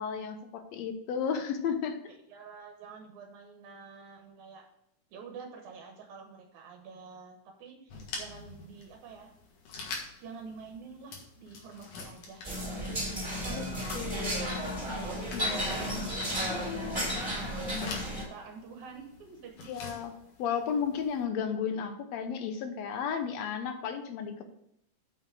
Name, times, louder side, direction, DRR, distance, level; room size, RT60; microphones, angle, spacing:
voice 1, 0.0-2.1 13.5-13.6 13.9-14.5 15.3-15.7 16.5-17.0 19.7-20.1 20.4-24.4, left 7 dB, 70° left, 7 dB, 1.9 m, -33 dB
voice 2, 2.3-4.6 5.1-9.3 9.9-12.9 13.3-14.5 14.9-16.0 17.1-17.8 18.1-19.8, right 5 dB, 80° right, 2 dB, 2.5 m, -48 dB
sound 1, 7.9-21.2, left 4 dB, 85° left, 3.1 m, -47 dB
sound 2, 12.4-18.2, equal, 15° right, 3.0 m, -33 dB
6.5 x 5.8 x 6.4 m, 0.76 s
omnidirectional pair, 3.4 m